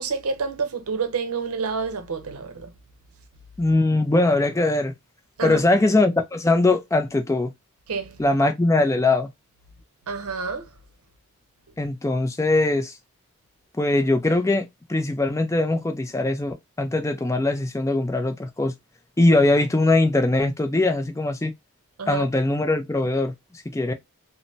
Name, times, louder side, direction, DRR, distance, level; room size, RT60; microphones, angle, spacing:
voice 1, 0.0-2.7 5.4-5.6 7.9-8.2 10.1-10.7 22.0-22.2, right 5 dB, 80° right, 0.6 m, -28 dB
voice 2, 3.6-4.9 5.4-7.5 8.2-9.3 11.8-13.0 13.8-18.7 19.2-21.5 22.1-23.9, left 2 dB, 15° left, 0.4 m, -21 dB
3.2 x 2.0 x 2.6 m
head